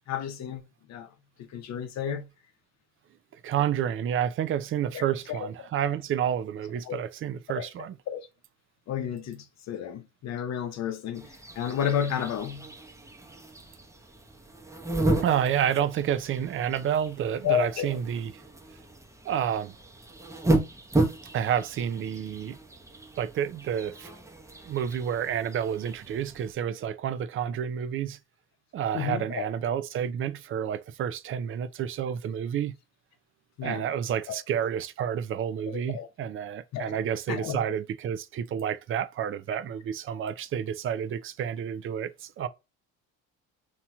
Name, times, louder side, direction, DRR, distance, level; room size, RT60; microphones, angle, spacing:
voice 1, 0.1-0.6 0.9-1.1 1.4-2.3 4.9-5.0 5.3-5.7 6.8-7.0 7.5-7.7 8.1-8.3 8.9-12.7 17.4-18.0 20.3-20.4 28.9-29.5 33.6-33.8 34.3-34.4 35.7-36.1 36.7-37.0 37.3-37.6, left 9 dB, 60° left, 0.8 m, -31 dB
voice 2, 3.4-8.0 15.2-18.3 19.2-19.7 21.3-22.6 23.2-24.1 24.7-28.2 28.7-32.8 33.6-42.5, right 9 dB, 40° right, 0.4 m, -29 dB
sound 1, 11.1-26.5, right 2 dB, 10° right, 0.7 m, -33 dB
2.9 x 2.8 x 2.3 m
supercardioid pair, 75°, 31 cm